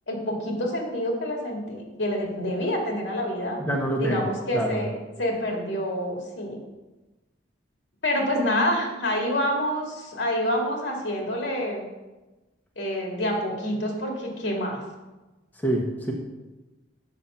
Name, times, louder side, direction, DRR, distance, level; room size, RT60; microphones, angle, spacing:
voice 1, 0.1-3.6 4.0-4.9 5.2-6.6 8.0-11.9 12.8-14.8, equal, 75° left, 0 dB, 2.2 m, -27 dB
voice 2, 3.6-4.2 4.5-4.8 15.6-16.1, right 1 dB, 10° left, -1 dB, 1.0 m, -26 dB
7.5 x 6.5 x 5.6 m, 1.1 s
head